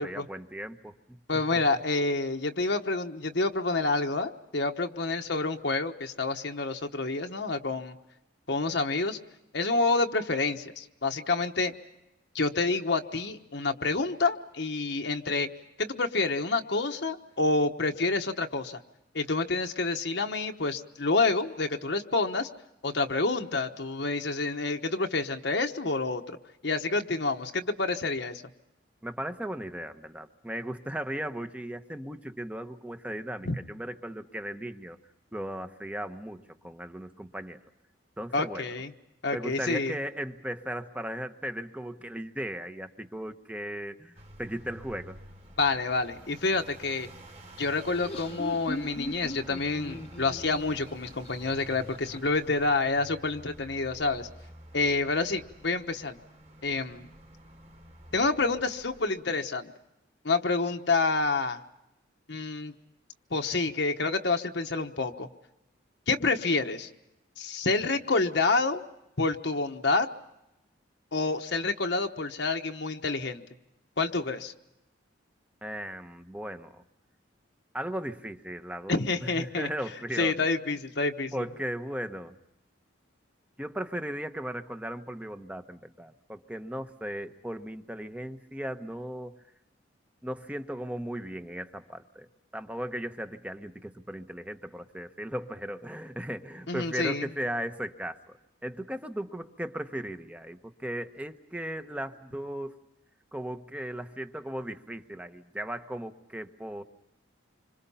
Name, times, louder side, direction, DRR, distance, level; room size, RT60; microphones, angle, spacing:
voice 1, 0.0-1.2 1.5-1.6 29.0-35.0 35.3-37.6 38.2-38.6 39.3-45.2 75.6-76.8 77.7-80.5 81.3-82.3 83.6-89.4 90.2-92.3 92.5-98.4 98.6-102.8 103.3-106.8, equal, 5° right, 8 dB, 1.0 m, -37 dB
voice 2, 1.3-8.0 8.5-9.2 9.5-11.7 12.3-15.5 15.8-18.8 19.1-22.5 22.8-26.4 26.6-28.4 33.4-33.5 38.3-38.9 39.2-39.9 45.6-47.1 47.6-54.3 54.7-56.2 56.6-57.1 58.1-59.7 60.2-61.6 62.3-62.7 63.3-65.3 66.1-66.9 67.4-68.8 69.2-70.1 71.1-73.4 74.0-74.5 78.9-79.7 80.2-81.4 96.7-97.3, left 3 dB, 55° left, 4 dB, 1.1 m, -28 dB
sound 1, 44.2-59.1, equal, 30° right, 2.7 m, -50 dB
Laughter, 47.8-52.4, left 1 dB, 30° left, 1.0 m, -39 dB
26.5 x 26.0 x 5.6 m, 0.89 s
head